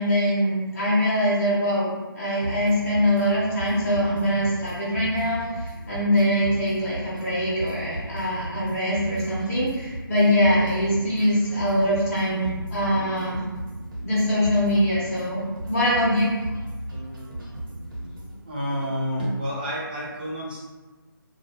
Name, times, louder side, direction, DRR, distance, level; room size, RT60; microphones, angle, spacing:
voice 1, 0.0-13.4 14.0-15.4 15.7-16.2, equal, 40° left, -10 dB, 0.8 m, -23 dB
sound 1, 2.4-18.4, right 1 dB, 65° right, 1.0 m, -36 dB
voice 2, 18.5-20.6, equal, 25° right, -6 dB, 0.5 m, -29 dB
2.3 x 2.1 x 2.8 m, 1.2 s
figure-of-eight pair, 155°, 12 cm